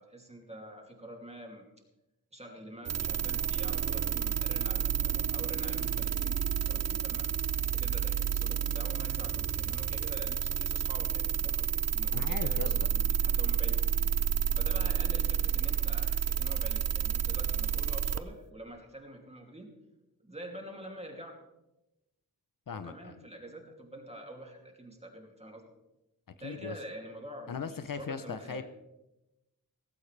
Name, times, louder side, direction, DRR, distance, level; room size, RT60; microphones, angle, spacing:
voice 1, 0.0-1.7 2.3-7.3 7.7-13.8 14.5-19.7 20.2-21.3 22.7-25.7 26.4-28.6, right 1 dB, 20° right, 1 dB, 2.7 m, -46 dB
sound 1, 2.9-18.2, right 7 dB, 45° right, 0.6 m, -30 dB
voice 2, 12.1-12.7 22.7-23.1 26.4-26.8 27.5-28.6, left 6 dB, 65° left, 11 dB, 0.8 m, -38 dB
17.0 x 15.0 x 3.4 m, 0.96 s
wide cardioid pair, 110°, 35 cm